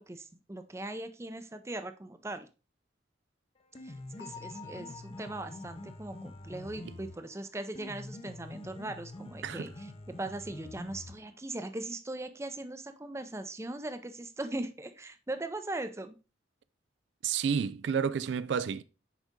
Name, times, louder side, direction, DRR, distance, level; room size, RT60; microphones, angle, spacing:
voice 1, 0.0-2.5 3.8-9.9 10.2-16.2, right 2 dB, 15° right, 0.5 m, -39 dB
Piano, 3.6-11.5, left 1 dB, 30° left, 0.6 m, -46 dB
Bell, 4.2-7.9, left 6 dB, 75° left, 1.5 m, -51 dB
voice 2, 17.2-18.8, right 7 dB, 75° right, 0.3 m, -30 dB
6.4 x 4.9 x 3.6 m
head